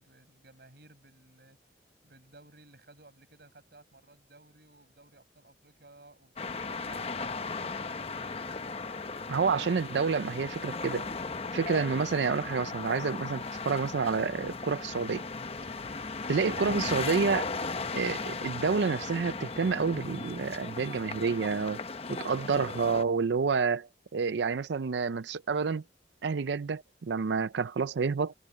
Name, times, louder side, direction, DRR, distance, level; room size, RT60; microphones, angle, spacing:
voice 1, 0.0-1.6 2.0-7.1, right 2 dB, 65° right, 6.2 m, -57 dB
sound 1, 6.4-23.0, left 4 dB, 35° left, 0.9 m, -37 dB
voice 2, 9.3-11.1 11.5-15.2 16.3-17.5 17.9-21.8 22.1-25.8 26.2-28.3, right 5 dB, 85° right, 0.5 m, -29 dB
head